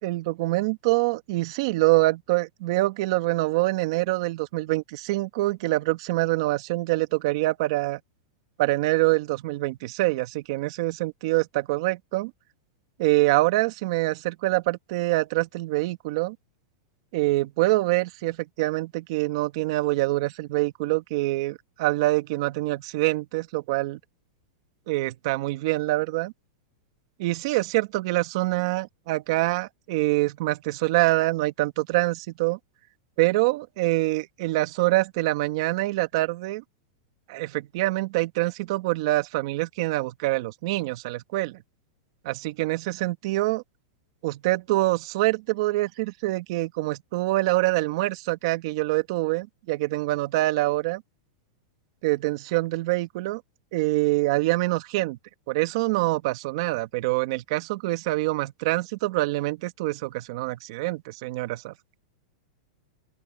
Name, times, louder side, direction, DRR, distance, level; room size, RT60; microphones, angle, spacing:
voice 1, 0.0-8.0 8.6-12.3 13.0-16.3 17.1-24.0 24.9-26.3 27.2-32.6 33.2-36.6 37.3-41.6 42.2-43.6 44.2-51.0 52.0-53.4 53.7-55.2 55.5-61.7, right 19 dB, 50° right, 1.8 m, -25 dB
open air
supercardioid pair, 160°, 4 cm